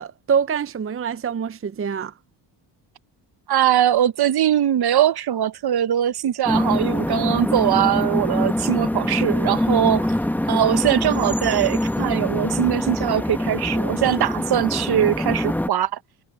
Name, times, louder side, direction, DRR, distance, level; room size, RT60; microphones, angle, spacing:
voice 1, 0.0-2.1, right 7 dB, 30° right, 0.8 m, -25 dB
voice 2, 3.5-10.1 10.4-16.0, right 10 dB, 55° right, 1.2 m, -21 dB
sound 1, 6.5-15.7, left 1 dB, 5° left, 1.3 m, -24 dB
supercardioid pair, 65°, 45 cm